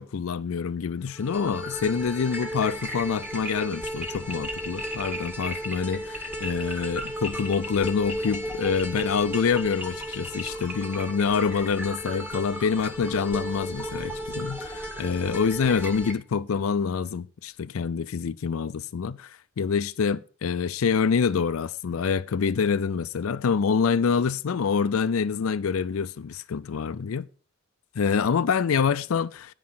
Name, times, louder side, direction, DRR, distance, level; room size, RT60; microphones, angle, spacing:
voice 1, 0.0-27.3 28.0-29.5, left 6 dB, 80° left, 0.4 m, -26 dB
sound 1, 1.1-16.1, equal, 10° right, 2.0 m, -34 dB
10.5 x 4.9 x 5.6 m
head